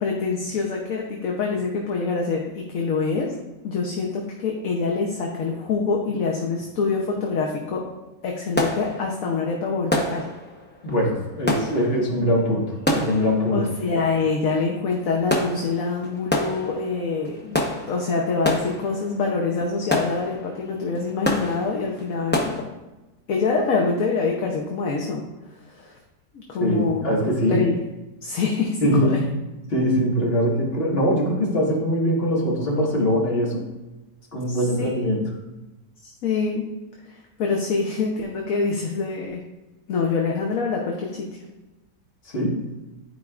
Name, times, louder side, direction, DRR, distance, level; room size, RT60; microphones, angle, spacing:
voice 1, 0.0-7.8 8.2-10.3 13.5-22.6 23.3-25.2 25.7-26.0 26.3-27.1 27.5-27.7 28.2-29.2 34.5-34.9 36.0-36.6 37.1-39.4 39.9-41.3, left 4 dB, 60° left, 0 dB, 1.1 m, -25 dB
sound 1, 7.7-7.8 8.0-22.6, left 1 dB, 15° left, 0.4 m, -29 dB
voice 2, 10.8-13.6 26.6-27.6 28.8-29.2 29.7-33.6 34.3-35.2 42.3-42.6, equal, 35° left, -4 dB, 1.8 m, -22 dB
11.5 x 4.7 x 2.4 m, 1.1 s
omnidirectional pair, 1.7 m